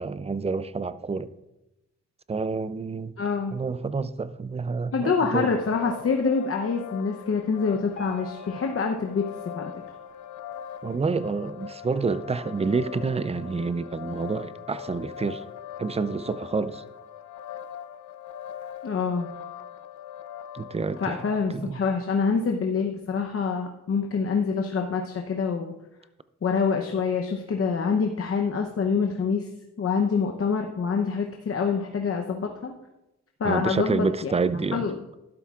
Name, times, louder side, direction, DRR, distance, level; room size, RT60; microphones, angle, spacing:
voice 1, 0.0-1.3 2.3-3.2 3.5-5.5 10.8-15.4 15.8-16.8 20.5-21.2 21.5-21.8 33.4-34.8, right 4 dB, 20° right, 0.4 m, -28 dB
voice 2, 3.2-3.6 4.9-9.3 9.6-9.7 18.8-19.3 21.0-25.7 26.4-29.5 29.8-32.7 33.4-34.3 34.7-34.9, left 5 dB, 50° left, 0.8 m, -26 dB
sound 1, 5.3-21.4, left 9 dB, 85° left, 0.7 m, -41 dB
Piano, 7.9-11.0 11.6-11.7 12.0-12.1 12.8-12.9 13.5-13.6, right 1 dB, 30° left, 4.0 m, -49 dB
12.0 x 11.5 x 2.4 m
cardioid pair, 100°, 29 cm